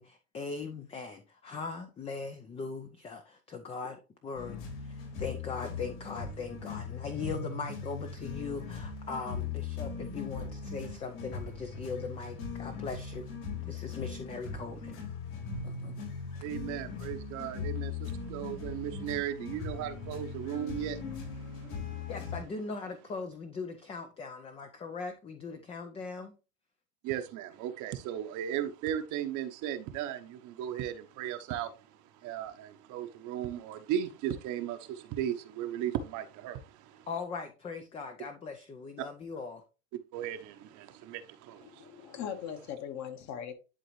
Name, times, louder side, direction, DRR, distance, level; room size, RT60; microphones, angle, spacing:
voice 1, 0.0-13.3 13.6-15.0 15.6-15.9 22.1-26.4 37.1-39.6, left 4 dB, 15° left, 0.5 m, -40 dB
sound 1, 4.3-22.4, left 5 dB, 70° left, 4.3 m, -39 dB
voice 2, 16.4-21.5 21.8-22.0 27.0-37.1 40.1-42.1, right 10 dB, 45° right, 0.9 m, -36 dB
voice 3, 41.6-43.5, left 8 dB, 40° left, 1.4 m, -40 dB
11.0 x 3.9 x 3.1 m
supercardioid pair, 125°, 44 cm